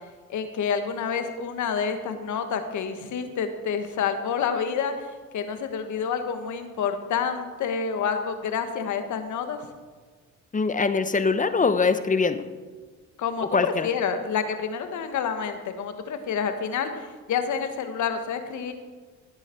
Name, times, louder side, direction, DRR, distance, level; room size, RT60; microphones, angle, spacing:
voice 1, 0.3-4.9 5.3-9.6 13.2-18.7, left 6 dB, 75° left, 8 dB, 1.4 m, -28 dB
voice 2, 10.5-12.4 13.5-13.9, left 4 dB, 25° left, 11 dB, 0.9 m, -23 dB
15.5 x 8.8 x 4.5 m, 1.5 s
cardioid pair, 90°, 30 cm